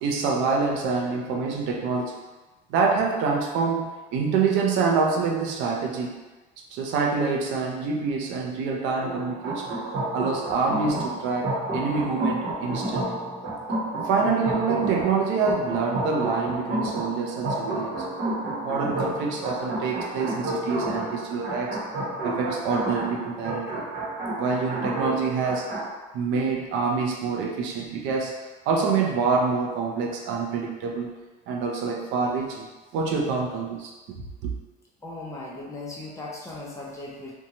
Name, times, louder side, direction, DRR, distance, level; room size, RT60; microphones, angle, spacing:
voice 1, 0.0-2.2 2.7-6.2 6.7-9.7 10.1-13.2 14.0-18.1 18.6-21.8 22.2-23.9 24.4-25.7 26.1-28.3 28.7-31.1 31.5-32.7 32.9-33.9 34.4-34.5, right 4 dB, 80° right, 0 dB, 0.5 m, -26 dB
sound 1, 9.0-25.9, right 1 dB, 50° right, 1.0 m, -31 dB
voice 2, 35.0-37.4, left 2 dB, 15° left, -4 dB, 0.5 m, -37 dB
2.7 x 2.2 x 2.8 m, 1.2 s
cardioid pair, 135°, 19 cm